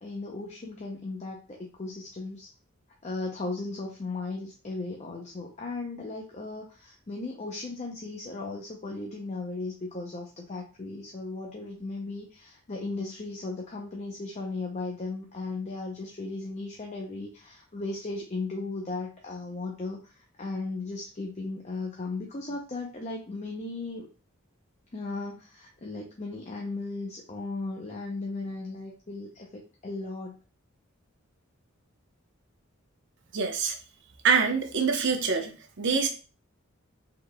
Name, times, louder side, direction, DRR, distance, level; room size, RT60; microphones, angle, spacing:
voice 1, 0.0-2.5 3.0-24.1 24.9-30.4, left 3 dB, 35° left, 0 dB, 0.6 m, -36 dB
voice 2, 33.3-33.8 34.2-35.5 35.8-36.1, right 5 dB, 60° right, 4 dB, 0.8 m, -25 dB
5.2 x 3.8 x 2.2 m, 0.36 s
head